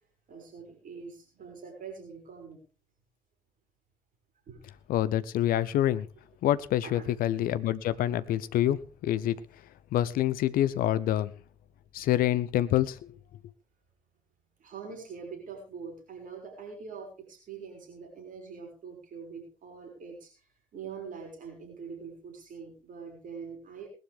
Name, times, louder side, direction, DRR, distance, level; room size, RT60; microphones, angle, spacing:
voice 1, 0.3-2.6 4.5-4.6 6.8-7.1 14.6-20.4 20.7-23.9, right 5 dB, 50° right, 6.0 m, -44 dB
voice 2, 4.9-6.1 6.4-9.4 9.9-11.3 11.9-13.0, left 12 dB, 60° left, 0.9 m, -26 dB
20.0 x 12.0 x 3.5 m
figure-of-eight pair, 45°, 17 cm